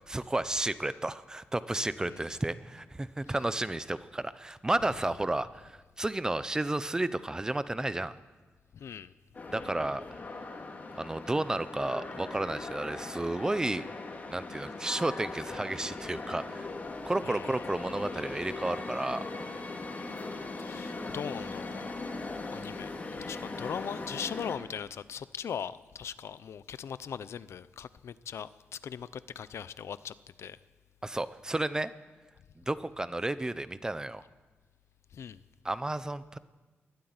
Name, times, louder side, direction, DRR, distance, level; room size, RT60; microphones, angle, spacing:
voice 1, 0.1-8.1 9.5-10.0 11.0-13.9 14.3-16.7 17.1-19.3 31.0-31.9 32.6-34.2 35.6-36.4, right 2 dB, 15° right, 0.7 m, -32 dB
voice 2, 8.7-9.1 17.2-17.7 20.6-22.0 22.5-22.9 23.2-30.6 35.1-35.4, left 8 dB, 80° left, 0.7 m, -40 dB
sound 1, 9.3-24.6, left 3 dB, 40° left, 2.6 m, -40 dB
20.5 x 13.0 x 9.7 m
wide cardioid pair, 150°, 5 cm